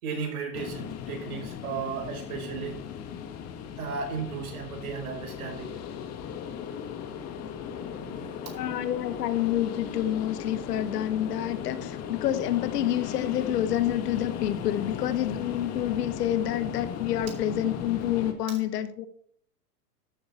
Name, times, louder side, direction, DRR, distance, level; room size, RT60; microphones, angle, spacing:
voice 1, 0.0-2.8 3.8-5.7 7.9-8.5, right 5 dB, 60° right, 1 dB, 5.2 m, -35 dB
sound 1, 0.5-18.3, left 8 dB, 30° left, 1.7 m, -37 dB
voice 2, 8.5-19.1, left 11 dB, 75° left, 12 dB, 1.4 m, -28 dB
13.0 x 7.0 x 4.3 m, 0.63 s
hypercardioid pair, 125°, 48 cm